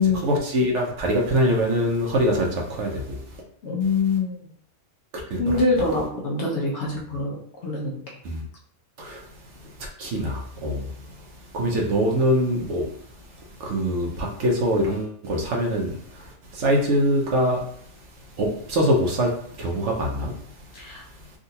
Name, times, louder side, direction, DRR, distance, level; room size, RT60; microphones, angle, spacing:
voice 1, 0.0-3.4 5.1-5.6 8.2-8.4 9.0-9.3 9.5-12.9 13.6-17.9 18.3-20.6, equal, 65° right, 1.0 m, -24 dB
voice 2, 3.6-4.5 5.4-7.4 7.6-8.2 20.7-21.0, left 3 dB, 60° left, 0.9 m, -24 dB
3.7 x 2.4 x 2.7 m
omnidirectional pair, 1.4 m